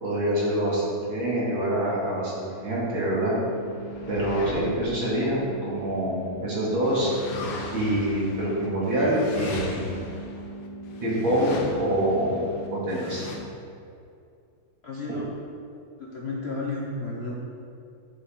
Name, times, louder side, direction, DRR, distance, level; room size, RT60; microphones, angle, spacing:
voice 1, 0.0-3.4 4.1-7.1 7.7-10.0 11.0-12.4 12.7-13.2 15.1-15.2, right 1 dB, 65° right, -7 dB, 3.1 m, -26 dB
sound 1, 3.2-6.3 6.8-13.4, left 2 dB, 85° left, 1.9 m, -39 dB
sound 2, 3.4-13.4, right 2 dB, 85° right, 1.9 m, -40 dB
voice 2, 14.8-15.3 16.0-17.3, left 2 dB, 55° left, -4 dB, 0.7 m, -32 dB
8.2 x 7.3 x 3.8 m, 2.5 s
omnidirectional pair, 2.4 m